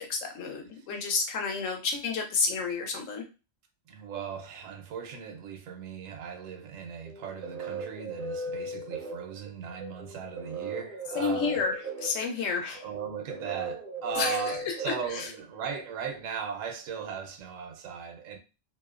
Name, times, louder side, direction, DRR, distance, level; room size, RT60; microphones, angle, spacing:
voice 1, 0.0-3.2 11.1-11.7 12.0-12.8 14.2-14.4 15.1-15.2, left 4 dB, 75° left, 1.0 m, -30 dB
voice 2, 3.9-11.7 12.3-18.4, right 7 dB, 80° right, 0.9 m, -38 dB
sound 1, 7.1-15.8, right 1 dB, 60° right, 0.6 m, -37 dB
2.6 x 2.0 x 2.4 m
omnidirectional pair, 1.3 m